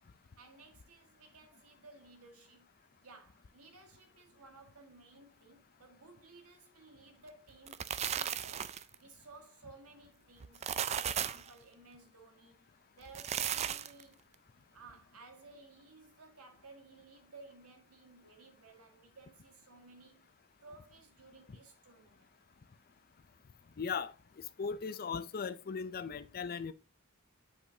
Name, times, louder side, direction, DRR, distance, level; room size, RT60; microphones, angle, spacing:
voice 1, 0.4-2.7 3.0-12.7 13.0-14.2 14.7-20.3 20.6-22.3, right 3 dB, 80° right, 1.7 m, -57 dB
sound 1, 7.5-8.9 10.4-11.5 13.0-14.0, right 9 dB, 30° right, 0.3 m, -35 dB
voice 2, 23.8-24.1 24.6-26.7, left 5 dB, 45° left, 0.5 m, -37 dB
8.5 x 5.0 x 2.8 m
head